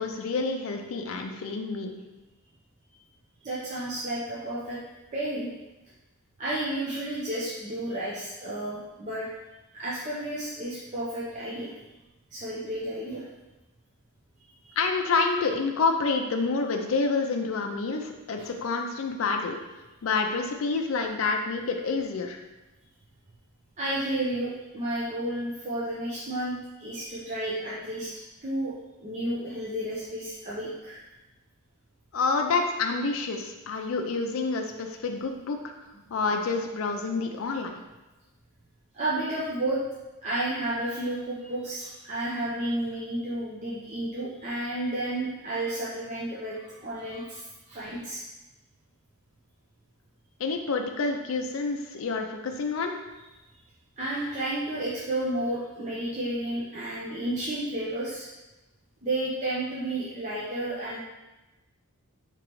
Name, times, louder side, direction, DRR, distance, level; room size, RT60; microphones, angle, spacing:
voice 1, 0.0-1.9 14.8-19.6 20.0-22.4 32.1-35.6 36.1-37.8 50.4-52.9, left 4 dB, 65° left, 3 dB, 0.4 m, -28 dB
voice 2, 3.4-4.8 5.1-5.5 6.4-9.3 9.7-11.7 12.3-13.2 14.6-14.7 18.4-18.5 23.8-28.1 28.4-28.7 29.0-31.0 38.9-39.8 40.2-47.4 47.7-48.2 54.0-58.3 59.0-61.0, right 1 dB, 35° right, -8 dB, 0.6 m, -31 dB
4.7 x 2.9 x 3.0 m, 1.1 s
head